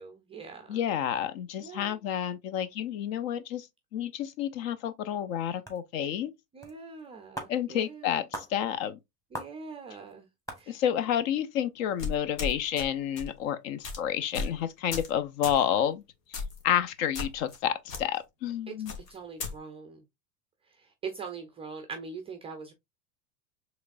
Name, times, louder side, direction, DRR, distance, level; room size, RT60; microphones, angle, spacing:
voice 1, 0.0-0.8 1.6-2.0 6.5-8.2 9.3-10.3 10.6-10.8 18.7-18.8 19.1-20.0 20.8-22.7, right 5 dB, 15° right, 0.3 m, -42 dB
voice 2, 0.7-3.7 3.9-6.3 7.5-9.0 10.7-16.0 16.3-18.9, left 10 dB, 55° left, 0.7 m, -30 dB
sound 1, 5.7-5.8 6.6-6.7 7.0-7.1 7.4-7.6 8.3-8.5 9.3-9.5 10.1-10.2 10.5-10.6, right 1 dB, 5° left, 1.2 m, -38 dB
sound 2, 12.0-12.9 13.2-13.4 13.8-14.0 14.3-14.6 14.9-15.1 15.4-15.6 16.3-16.6 17.1-17.6 17.9-18.0 18.9-19.5, left 4 dB, 85° left, 1.5 m, -35 dB
4.9 x 3.3 x 2.5 m
hypercardioid pair, 105°, 47 cm